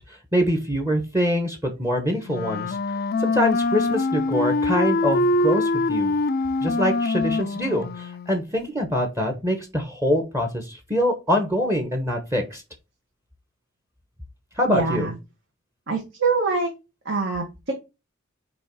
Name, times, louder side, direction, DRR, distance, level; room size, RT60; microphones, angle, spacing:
voice 1, 0.1-2.8 3.2-6.1 6.6-12.6 14.6-15.1, equal, 15° right, 5 dB, 1.1 m, -24 dB
Wind instrument woodwind instrument, 2.2-8.5, left 2 dB, 50° left, 0.5 m, -24 dB
voice 2, 14.7-15.2 15.9-16.7 17.1-17.7, right 4 dB, 60° right, 0 dB, 1.9 m, -24 dB
8.9 x 3.1 x 4.6 m, 0.26 s
head